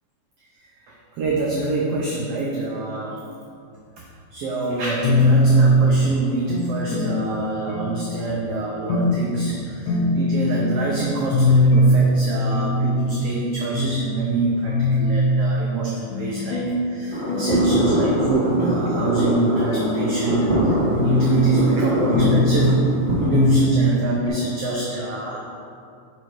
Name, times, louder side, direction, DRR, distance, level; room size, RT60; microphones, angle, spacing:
voice 1, 0.9-3.2 4.3-22.8 23.2-25.4, right 2 dB, 85° right, -3 dB, 1.3 m, -26 dB
sound 1, 5.0-6.0 6.5-7.3 7.7-8.3 8.9-9.2 9.5-9.6 9.9-10.8 11.3-11.9 12.3-13.3 13.7-13.9 14.3-14.4 14.7-15.6 16.1-16.7 17.3-18.0 18.5-19.0 19.5-20.5 20.9-21.5 22.1-22.8 23.3-23.6 23.9-24.0 24.3-24.4, left 1 dB, 75° left, 2.0 m, -20 dB
sound 2, 17.1-23.2, equal, 35° right, 0.7 m, -23 dB
5.3 x 4.3 x 4.6 m, 2.4 s
omnidirectional pair, 3.4 m